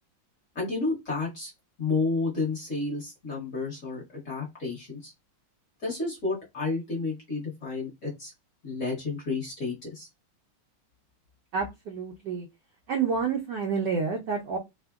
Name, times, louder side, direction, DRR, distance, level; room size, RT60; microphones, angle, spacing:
voice 1, 0.5-1.5 1.8-5.1 5.8-8.3 8.6-10.1, left 3 dB, 45° left, -5 dB, 1.2 m, -31 dB
voice 2, 11.5-12.5 12.9-14.6, right 5 dB, 80° right, 2 dB, 0.9 m, -29 dB
3.5 x 2.0 x 2.3 m, 0.21 s
omnidirectional pair, 2.4 m